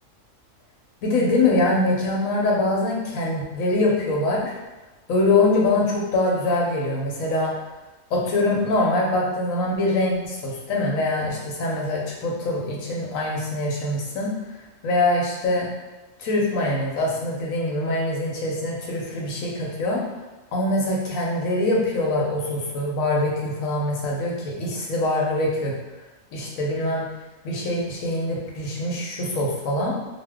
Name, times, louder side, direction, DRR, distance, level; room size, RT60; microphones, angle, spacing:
voice 1, 1.0-4.5 5.1-7.5 8.1-14.3 14.8-15.7 16.2-20.0 20.5-25.7 26.3-27.1 27.4-30.0, left 2 dB, 80° left, -2 dB, 1.1 m, -23 dB
2.7 x 2.2 x 3.4 m, 1.1 s
omnidirectional pair, 1.4 m